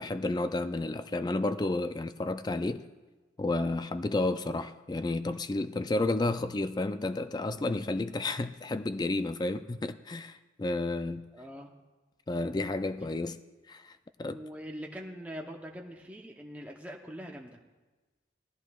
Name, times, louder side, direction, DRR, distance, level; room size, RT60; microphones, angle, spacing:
voice 1, 0.0-2.8 3.4-11.3 12.3-13.4 13.7-14.4, left 2 dB, 20° left, 11 dB, 0.3 m, -31 dB
voice 2, 11.3-11.8 14.2-17.6, equal, 10° right, 0 dB, 0.7 m, -43 dB
18.5 x 13.5 x 2.3 m, 1.2 s
head